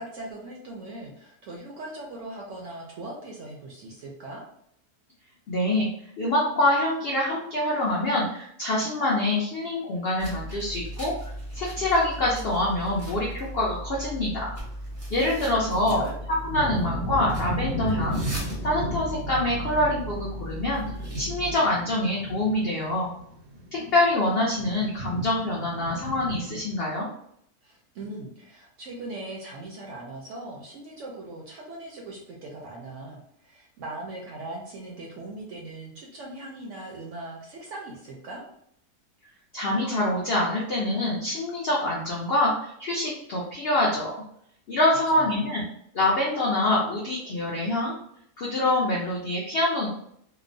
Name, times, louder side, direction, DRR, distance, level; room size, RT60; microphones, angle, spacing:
voice 1, 0.0-4.4 15.4-16.2 27.6-38.4 44.9-45.4, right 2 dB, 70° right, -2 dB, 0.7 m, -40 dB
voice 2, 5.5-5.9 6.2-14.5 15.1-16.0 16.4-18.2 18.6-20.8 21.2-23.1 23.7-27.1 39.5-44.1 44.7-45.6 45.9-47.9 48.4-49.9, left 1 dB, 75° left, -4 dB, 0.5 m, -25 dB
sound 1, 10.2-21.6, right 1 dB, 20° right, 0.5 m, -37 dB
sound 2, 15.4-26.8, equal, 85° right, 1.1 m, -35 dB
2.9 x 2.0 x 2.5 m, 0.72 s
omnidirectional pair, 1.7 m